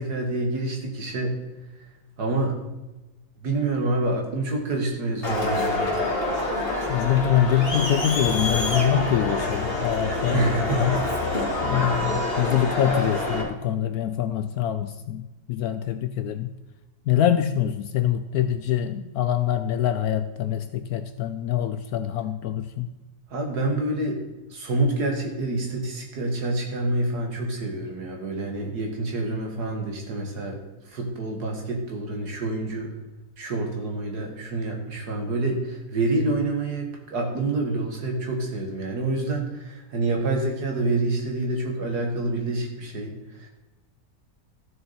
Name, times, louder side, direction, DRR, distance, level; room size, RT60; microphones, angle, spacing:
voice 1, 0.0-1.4 2.2-2.6 3.4-6.0 10.3-10.9 23.3-24.2 24.5-30.6 30.9-32.9 33.4-43.5, right 2 dB, 65° right, 2 dB, 2.3 m, -27 dB
Crowd, 5.2-13.4, left 2 dB, 35° left, 2.1 m, -26 dB
voice 2, 6.9-11.0 11.6-16.5 17.1-22.9, left 10 dB, 70° left, 10 dB, 0.9 m, -24 dB
14.0 x 6.7 x 4.2 m, 1.0 s
omnidirectional pair, 1.9 m